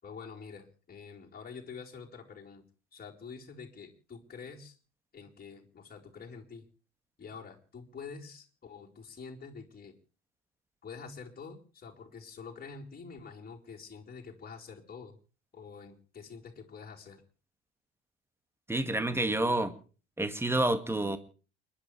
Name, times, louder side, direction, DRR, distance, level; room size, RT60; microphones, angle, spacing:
voice 1, 0.0-2.6 2.9-4.8 5.1-6.7 7.2-9.9 10.8-15.2 15.5-17.2, left 5 dB, 25° left, -1 dB, 4.2 m, -47 dB
voice 2, 18.7-19.7 20.2-21.2, right 1 dB, 5° right, 10 dB, 2.0 m, -28 dB
29.0 x 11.5 x 3.3 m, 0.37 s
hypercardioid pair, 65°, 34 cm